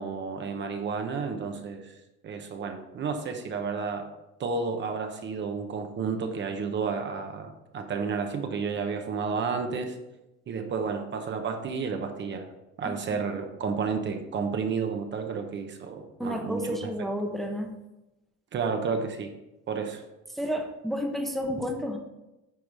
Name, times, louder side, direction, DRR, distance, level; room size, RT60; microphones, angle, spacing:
voice 1, 0.0-1.9 2.2-4.1 4.4-10.0 10.5-12.5 12.8-16.9 18.5-19.3 19.7-20.0, right 5 dB, 40° right, 5 dB, 1.0 m, -31 dB
voice 2, 12.8-13.2 16.2-17.7 20.3-22.0, equal, ahead, 1 dB, 0.9 m, -31 dB
9.3 x 4.8 x 4.8 m, 0.97 s
cardioid pair, 130°, 30 cm